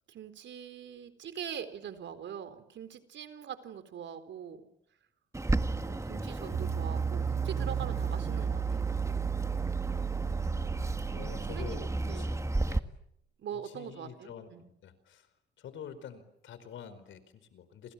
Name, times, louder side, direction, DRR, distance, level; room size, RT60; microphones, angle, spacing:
voice 1, 0.1-4.6 5.8-8.9 11.1-12.3 13.4-14.7, right 8 dB, 70° right, 11 dB, 4.1 m, -43 dB
Bird, 5.3-12.8, right 2 dB, 15° right, 1.6 m, -34 dB
sound 1, 6.5-12.8, right 7 dB, 50° right, 1.2 m, -34 dB
voice 2, 11.1-12.4 12.7-12.8 13.5-14.5 14.8-15.3 15.6-17.9, left 8 dB, 75° left, 13 dB, 4.7 m, -47 dB
29.5 x 28.0 x 7.3 m, 0.75 s
cardioid pair, 90°, 20 cm